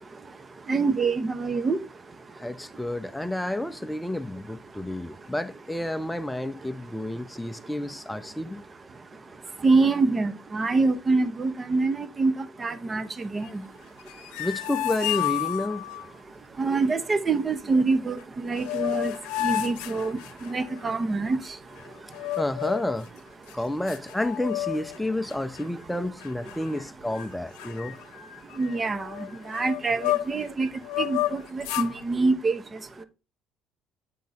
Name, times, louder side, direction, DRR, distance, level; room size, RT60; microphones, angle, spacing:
voice 1, 0.7-1.8 9.6-12.3 12.6-13.5 16.6-19.1 19.4-20.1 20.4-21.4 28.6-29.1 29.5-30.7 31.0-32.6, right 3 dB, 30° right, 0.8 m, -25 dB
voice 2, 2.4-8.6 14.4-15.8 22.4-23.1 23.5-28.0, left 1 dB, 5° left, 0.6 m, -30 dB
sound 1, 14.0-16.0 18.2-18.3 18.6-20.8 22.1-23.0 23.5-23.6 23.9-25.0 25.3-25.6 26.2-26.8 27.1-27.3 27.6-30.5 30.9-31.9, left 14 dB, 85° left, 0.7 m, -31 dB
8.5 x 3.7 x 4.1 m
supercardioid pair, 75°, 0 cm